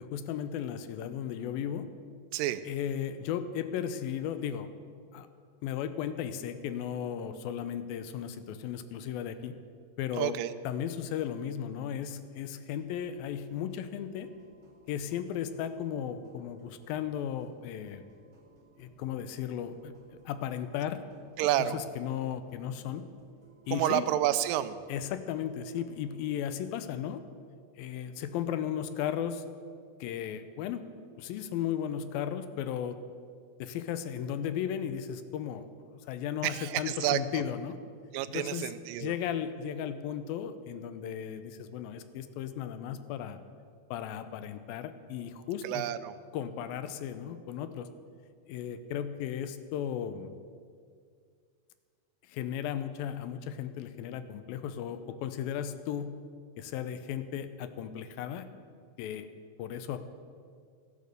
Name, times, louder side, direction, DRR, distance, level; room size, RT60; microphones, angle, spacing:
voice 1, 0.0-1.9 2.7-4.7 5.1-5.3 5.6-9.6 10.0-10.4 10.6-14.3 14.9-18.0 18.8-21.0 21.6-23.0 23.7-24.0 24.9-27.2 27.8-29.4 30.0-30.8 31.2-33.0 33.6-37.8 38.3-38.7 39.0-43.4 43.9-45.9 46.3-47.9 48.5-50.3 52.3-56.1 56.6-58.5 59.0-59.3 59.6-60.0, left 9 dB, 85° left, 11 dB, 2.6 m, -35 dB
voice 2, 10.2-10.5 21.4-21.8 23.7-24.8 36.4-37.4 38.1-39.1 45.6-46.2, right 13 dB, 80° right, 12 dB, 2.2 m, -29 dB
sound 1, 12.7-26.4, right 3 dB, 25° right, 3.4 m, -61 dB
13.5 x 10.5 x 6.8 m, 2.1 s
omnidirectional pair, 4.1 m